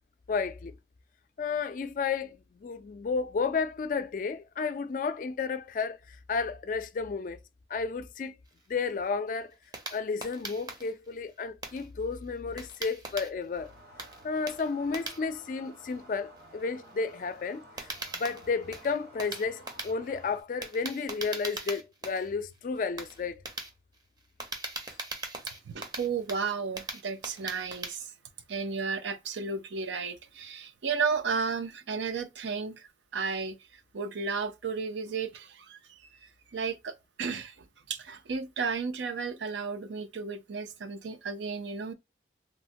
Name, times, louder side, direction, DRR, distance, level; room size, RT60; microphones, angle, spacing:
voice 1, 0.3-0.7 1.4-7.4 7.7-8.4 8.7-9.5 9.9-13.7 14.2-23.4, left 5 dB, 45° left, 0.3 m, -32 dB
sound 1, 8.5-13.7 14.0-28.0, right 2 dB, 20° right, 0.5 m, -41 dB
sound 2, 13.5-20.4, right 1 dB, 60° right, 0.9 m, -53 dB
voice 2, 25.4-28.1 28.5-41.9, right 5 dB, 80° right, 0.5 m, -34 dB
3.0 x 2.1 x 2.6 m
head